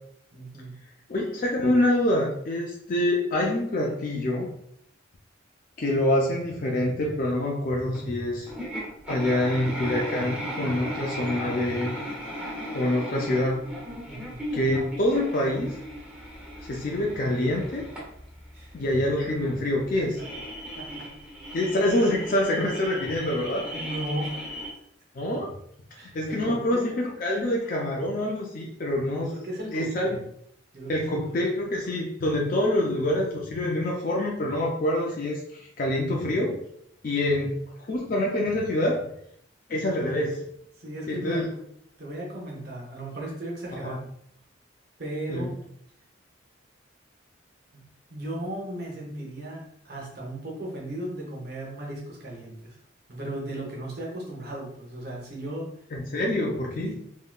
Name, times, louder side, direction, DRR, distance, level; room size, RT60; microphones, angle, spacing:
voice 1, 0.3-0.8 14.1-14.4 18.5-18.8 19.5-19.6 20.0-20.3 20.8-21.1 23.7-24.6 25.9-26.8 29.2-30.2 30.7-31.2 33.6-33.7 40.8-41.6 42.0-44.1 45.0-45.5 47.7-47.8 48.1-52.7 53.1-55.8 56.8-57.2, right 1 dB, 55° right, -3 dB, 0.7 m, -36 dB
voice 2, 1.1-4.5 5.8-8.5 9.1-11.9 12.7-13.6 14.5-15.8 16.7-17.8 18.7-20.2 21.5-23.7 25.2-25.5 26.0-29.3 29.7-30.1 30.9-36.6 37.0-37.6 37.9-39.1 39.7-40.4 41.1-41.5 43.8-44.0 45.3-45.5 55.9-57.0, left 1 dB, 45° left, -2 dB, 0.4 m, -26 dB
sound 1, 7.9-8.0 8.5-24.7, equal, 5° right, 0.6 m, -37 dB
3.6 x 2.1 x 2.2 m, 0.69 s
head